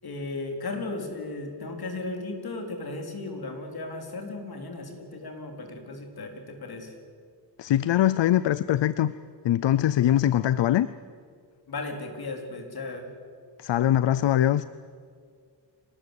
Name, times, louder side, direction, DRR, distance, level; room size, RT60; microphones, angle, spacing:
voice 1, 0.0-6.9 11.7-13.1, left 2 dB, 60° left, 4 dB, 4.3 m, -35 dB
voice 2, 7.6-9.1 9.4-10.9 13.6-14.6, left 12 dB, 85° left, 16 dB, 0.7 m, -22 dB
26.0 x 19.5 x 8.5 m, 2.2 s
wide cardioid pair, 120°, 42 cm